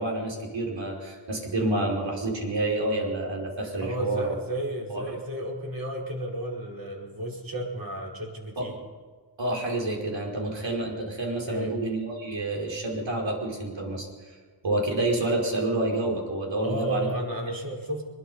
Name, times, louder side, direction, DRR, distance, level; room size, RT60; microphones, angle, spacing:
voice 1, 0.0-4.4 4.9-5.2 9.4-17.1, right 2 dB, 80° right, -1 dB, 5.2 m, -29 dB
voice 2, 3.8-8.7 11.5-11.7 16.6-18.0, right 1 dB, 50° right, -1 dB, 4.9 m, -33 dB
22.5 x 21.0 x 5.6 m, 1.5 s
wide cardioid pair, 115°, 44 cm